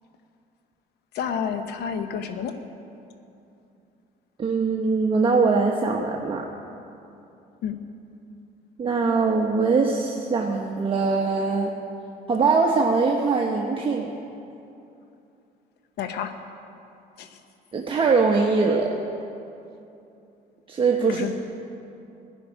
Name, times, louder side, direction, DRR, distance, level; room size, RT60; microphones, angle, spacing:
voice 1, 1.1-2.6 7.6-7.8 16.0-16.3 17.2-17.4 21.1-21.3, left 7 dB, 75° left, 8 dB, 0.9 m, -30 dB
voice 2, 4.4-6.4 8.8-11.7 12.3-14.1 17.7-19.0 20.7-21.3, right 4 dB, 30° right, 0 dB, 1.1 m, -22 dB
14.5 x 6.3 x 10.0 m, 2.7 s
cardioid pair, 110°, 17 cm